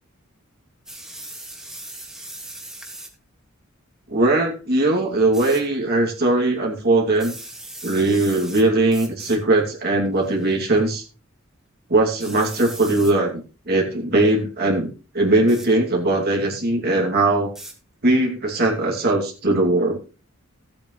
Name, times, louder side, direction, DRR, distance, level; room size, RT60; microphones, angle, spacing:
sound 1, 0.9-3.1 5.3-5.6 7.1-8.6 8.9-9.4 10.2-10.5 12.2-13.1 15.5-15.7 17.6-17.7, right 1 dB, 5° right, 2.4 m, -38 dB
voice 1, 4.1-7.3 7.8-11.0 11.9-14.9 15.1-17.5 18.0-20.0, right 2 dB, 50° right, -1 dB, 2.6 m, -20 dB
16.0 x 8.6 x 3.2 m, 0.34 s
head